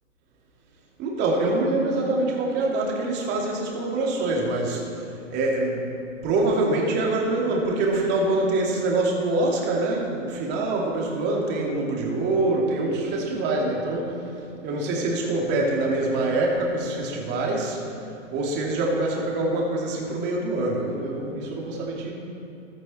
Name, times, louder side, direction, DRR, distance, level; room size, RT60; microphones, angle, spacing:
voice 1, 1.0-4.9 5.3-5.9 6.2-14.2 14.6-17.8 18.1-22.1, right 2 dB, 25° right, -2 dB, 2.5 m, -25 dB
14.5 x 12.5 x 4.3 m, 2.8 s
hypercardioid pair, 130°, 38 cm